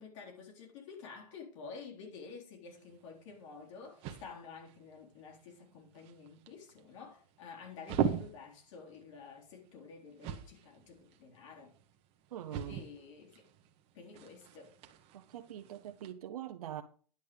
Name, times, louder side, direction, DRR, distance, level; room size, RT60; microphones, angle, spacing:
voice 1, 0.0-11.7 12.5-13.3 13.9-14.8, left 5 dB, 50° left, 3.7 m, -50 dB
sound 1, 2.7-16.1, right 8 dB, 30° right, 1.3 m, -43 dB
voice 2, 12.3-12.8 15.1-16.8, right 11 dB, 65° right, 1.0 m, -43 dB
10.5 x 7.9 x 5.2 m
hypercardioid pair, 145°, 21 cm